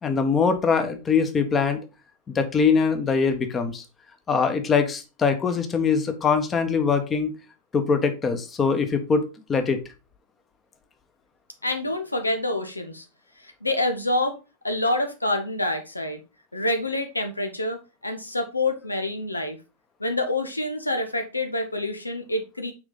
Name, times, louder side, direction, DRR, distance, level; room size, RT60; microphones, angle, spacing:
voice 1, 0.0-1.8 2.3-3.8 4.3-7.4 7.7-9.8, left 5 dB, 20° left, 7 dB, 1.2 m, -22 dB
voice 2, 11.6-13.0 13.4-14.3 14.6-16.2 16.5-19.6 20.0-22.7, left 1 dB, 85° left, 6 dB, 1.2 m, -27 dB
6.3 x 5.1 x 4.0 m, 0.29 s
figure-of-eight pair, 90°, 0 cm